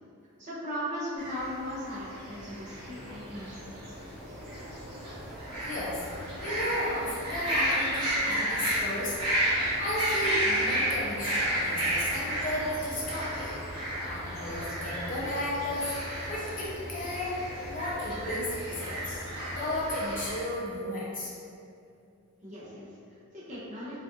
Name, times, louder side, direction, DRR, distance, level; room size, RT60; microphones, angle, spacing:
voice 1, 0.4-3.6 22.4-24.0, equal, 35° right, -9 dB, 0.7 m, -38 dB
sound 1, 1.2-20.4, equal, 80° right, 1.2 m, -32 dB
voice 2, 5.6-6.0 6.4-9.2 9.5-19.3 19.6-21.3, left 1 dB, 40° left, -6 dB, 0.5 m, -34 dB
sound 2, 5.9-20.0, left 1 dB, 5° right, 1.2 m, -48 dB
2.4 x 2.4 x 2.6 m, 2.4 s
head